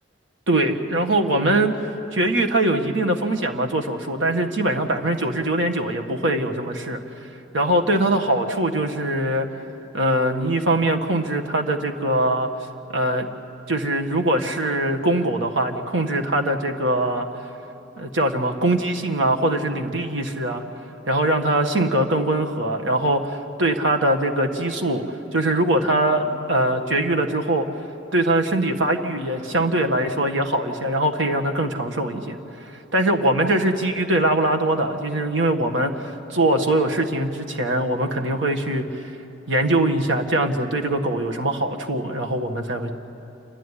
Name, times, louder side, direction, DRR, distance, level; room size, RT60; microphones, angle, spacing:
voice 1, 0.5-1.7 2.1-7.0 7.5-9.5 9.9-12.5 12.9-13.3 13.7-17.3 18.0-20.6 21.1-25.0 25.3-27.7 28.1-32.4 32.9-38.8 39.5-42.9, right 1 dB, 75° right, 3 dB, 1.7 m, -22 dB
28.0 x 12.5 x 9.9 m, 2.9 s
head